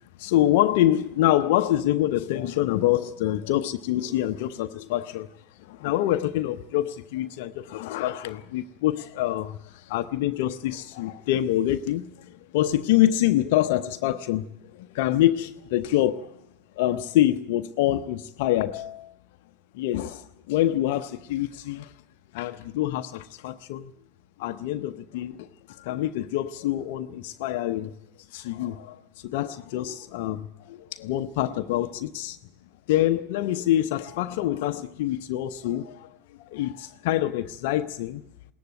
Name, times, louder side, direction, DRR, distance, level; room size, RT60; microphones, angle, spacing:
voice 1, 0.2-5.3 5.6-16.3 16.8-19.1 19.7-21.9 22.3-23.9 24.4-27.9 28.3-32.4 32.9-36.1 36.4-38.2, left 13 dB, 50° left, 0.8 m, -26 dB
21.0 x 18.0 x 7.9 m
figure-of-eight pair, 90°, 0 cm